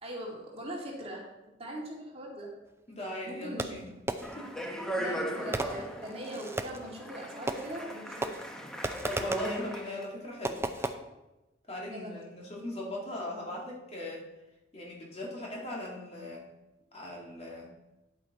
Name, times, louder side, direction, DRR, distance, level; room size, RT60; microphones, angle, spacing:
voice 1, 0.0-1.3 1.6-2.5 3.2-3.8 5.0-8.5 11.9-12.3, right 1 dB, 35° right, -2 dB, 2.1 m, -41 dB
voice 2, 2.9-3.9 4.4-4.6 5.0-5.1 9.0-10.9 11.7-14.3 14.7-16.5 16.9-17.7, left 1 dB, 35° left, -3 dB, 2.2 m, -40 dB
Fireworks, 3.6-4.5 5.5-6.9 7.5-7.9 8.2-9.6 10.4-10.9, right 2 dB, 15° right, 0.5 m, -35 dB
Speech, 4.2-10.0, equal, 5° left, 1.0 m, -37 dB
9.8 x 8.3 x 4.1 m, 1.0 s
head